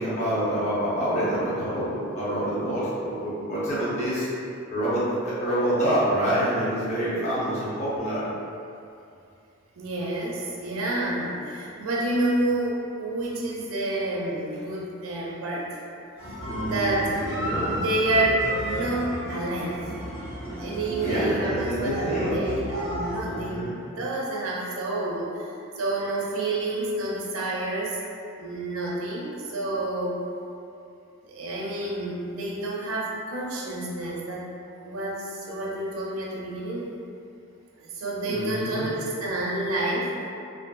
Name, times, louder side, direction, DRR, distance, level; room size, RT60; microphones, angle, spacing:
voice 1, 0.0-4.3 4.7-8.2 16.5-17.8 21.0-22.4 23.2-23.8 38.3-38.9, right 1 dB, 35° left, -10 dB, 0.7 m, -27 dB
voice 2, 9.8-15.7 16.3-17.2 17.7-19.7 20.6-23.7 24.0-28.0 28.4-30.2 31.2-34.4 34.8-37.0 37.8-40.1, right 1 dB, 75° right, -4 dB, 0.5 m, -29 dB
sound 1, 16.2-23.2, equal, 65° left, 1.1 m, -34 dB
sound 2, 17.3-20.5, right 1 dB, 20° right, 0.3 m, -35 dB
3.3 x 2.5 x 2.3 m, 2.6 s
head